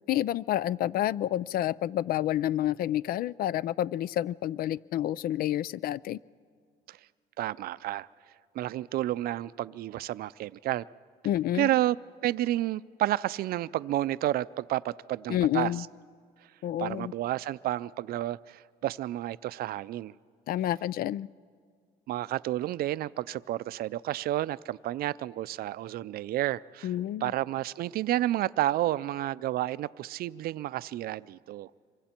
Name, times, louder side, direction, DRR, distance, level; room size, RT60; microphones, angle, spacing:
voice 1, 0.1-6.2 11.2-11.7 15.3-15.8 16.6-17.1 20.5-21.3 26.8-27.3, left 12 dB, 60° left, 22 dB, 0.4 m, -29 dB
voice 2, 7.4-8.1 8.5-10.8 11.5-12.0 12.2-15.7 16.8-20.1 22.1-26.9 27.2-31.7, right 14 dB, 65° right, 18 dB, 0.5 m, -30 dB
26.5 x 23.5 x 4.4 m, 2.1 s
cardioid pair, 110°, 17 cm